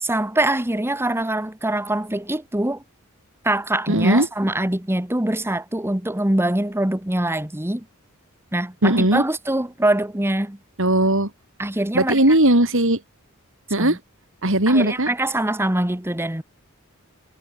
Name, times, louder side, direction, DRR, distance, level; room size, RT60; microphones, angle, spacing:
voice 1, 0.0-2.8 3.4-7.8 8.5-10.6 11.6-12.4 13.8-14.0 14.7-16.4, right 1 dB, 10° right, 1.4 m, -23 dB
voice 2, 3.9-4.3 8.8-9.2 10.8-11.3 11.9-13.0 13.7-14.0 14.4-15.1, right 1 dB, 65° right, 5.1 m, -18 dB
head